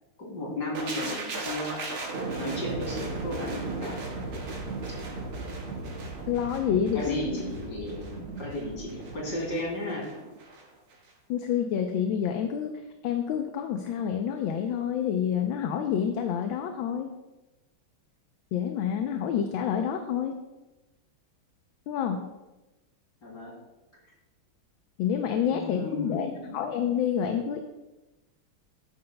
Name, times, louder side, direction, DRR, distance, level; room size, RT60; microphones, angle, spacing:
voice 1, 0.2-2.0 2.4-4.1 6.9-10.1 23.2-23.6 25.5-26.6, left 1 dB, 50° left, -3 dB, 3.6 m, -34 dB
sound 1, 0.7-10.6 10.9-11.1, right 3 dB, 75° right, 2.4 m, -36 dB
voice 2, 6.3-7.1 11.3-12.7 13.0-17.1 18.5-20.3 21.9-22.2 25.0-27.6, left 8 dB, 75° left, 5 dB, 1.4 m, -28 dB
13.5 x 9.3 x 2.2 m, 1.1 s
omnidirectional pair, 2.3 m